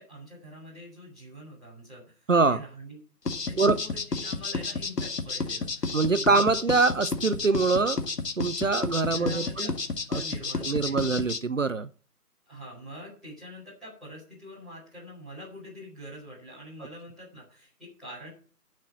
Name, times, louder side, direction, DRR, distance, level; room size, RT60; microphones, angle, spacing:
voice 1, 0.0-3.0 3.4-6.3 9.1-9.7 9.9-11.1 12.4-18.3, equal, ahead, 4.8 m, -45 dB
voice 2, 2.3-2.6 3.6-3.7 5.9-8.0 8.4-9.7 10.1-10.2 10.6-11.9, right 4 dB, 55° right, 0.6 m, -24 dB
sound 1, 3.2-11.4, left 4 dB, 80° left, 2.1 m, -31 dB
10.5 x 6.5 x 8.3 m
hypercardioid pair, 180°, 47 cm